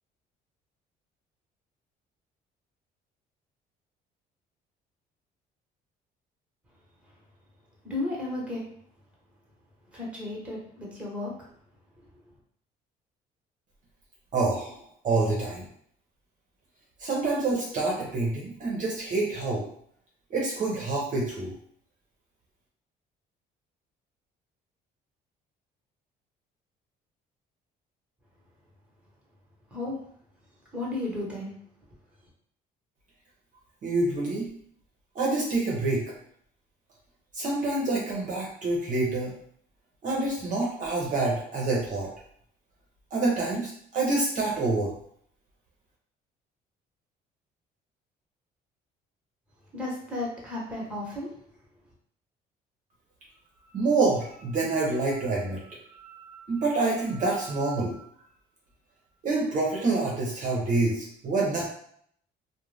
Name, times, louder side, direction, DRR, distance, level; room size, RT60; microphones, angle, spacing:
voice 1, 7.8-8.6 9.9-11.5 12.0-12.1 29.7-30.0 30.7-31.5 49.7-51.3, left 2 dB, 5° right, -4 dB, 1.1 m, -34 dB
voice 2, 14.3-14.8 15.0-15.7 17.0-19.6 20.3-21.5 33.8-34.5 35.1-36.1 37.3-39.3 40.0-42.1 43.1-44.9 53.7-58.0 59.2-61.7, right 3 dB, 50° right, -3 dB, 0.7 m, -27 dB
2.5 x 2.1 x 3.3 m, 0.65 s
cardioid pair, 110°, 17 cm